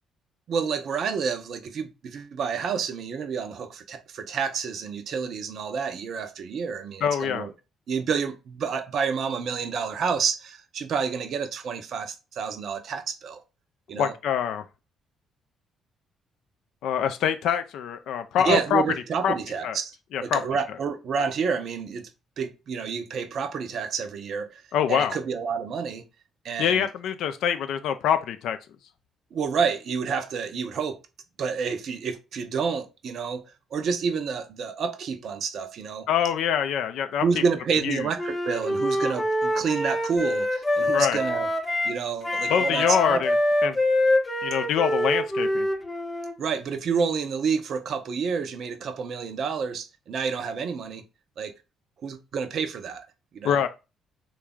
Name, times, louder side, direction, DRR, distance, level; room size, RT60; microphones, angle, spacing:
voice 1, 0.5-7.5 7.9-13.4 13.9-14.1 18.4-20.0 20.2-22.1 22.4-24.6 24.9-26.0 26.4-26.9 29.3-31.0 31.4-33.4 33.7-36.1 37.2-41.5 41.8-43.2 46.4-51.0 51.4-51.5 52.0-53.1 53.3-53.6, right 6 dB, 50° right, 0.5 m, -29 dB
voice 2, 7.0-7.5 13.9-14.6 16.8-18.8 19.2-19.3 19.6-19.8 20.1-20.4 24.7-25.2 26.6-28.6 36.1-37.2 37.8-38.0 40.9-41.2 42.5-43.3 43.6-43.8 44.4-45.7 53.4-53.7, left 8 dB, 60° left, 0.4 m, -24 dB
Wind instrument woodwind instrument, 38.2-42.0 42.2-46.3, left 1 dB, 15° left, 0.7 m, -25 dB
3.3 x 2.3 x 3.6 m
figure-of-eight pair, 45°, 0 cm